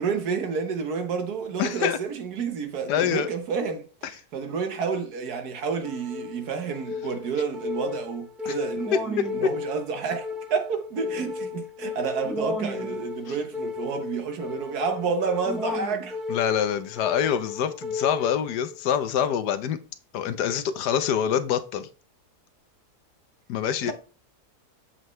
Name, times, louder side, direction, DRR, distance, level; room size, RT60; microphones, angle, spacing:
voice 1, 0.0-16.2 23.8-23.9, right 5 dB, 70° right, 1.6 m, -30 dB
voice 2, 1.6-2.0 2.9-3.3 8.4-8.5 13.3-13.4 16.3-19.8 20.1-21.9 23.5-23.9, left 9 dB, 80° left, 1.3 m, -25 dB
sound 1, 5.8-18.8, left 4 dB, ahead, 0.8 m, -34 dB
7.6 x 6.6 x 3.2 m
omnidirectional pair, 1.7 m